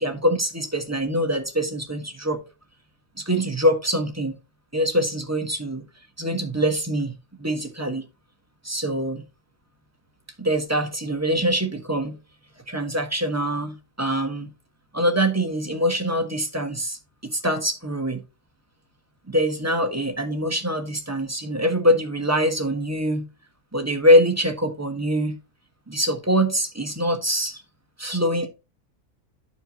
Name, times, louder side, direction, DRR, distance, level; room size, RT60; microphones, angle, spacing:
voice 1, 0.0-2.4 3.2-4.4 4.7-5.8 6.2-7.1 7.4-8.0 8.6-9.2 10.4-12.2 12.7-14.5 14.9-18.2 19.3-23.3 23.7-25.4 25.9-27.6 28.0-28.5, equal, 10° right, 1.2 m, -24 dB
12.5 x 4.5 x 2.9 m
omnidirectional pair, 1.6 m